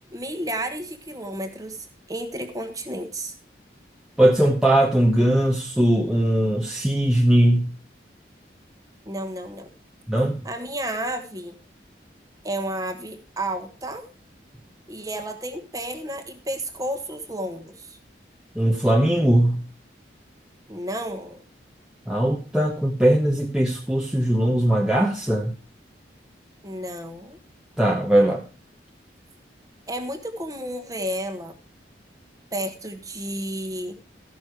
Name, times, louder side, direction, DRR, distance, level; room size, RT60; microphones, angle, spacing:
voice 1, 0.1-3.3 9.0-9.7 10.4-11.6 12.4-14.0 14.9-18.0 20.7-21.4 26.6-27.4 29.9-31.5 32.5-33.9, right 1 dB, 20° right, 6 dB, 1.3 m, -32 dB
voice 2, 4.2-7.7 10.1-10.3 18.6-19.6 22.1-25.5 27.8-28.4, right 1 dB, 5° right, -1 dB, 0.8 m, -20 dB
14.0 x 6.2 x 4.8 m, 0.37 s
head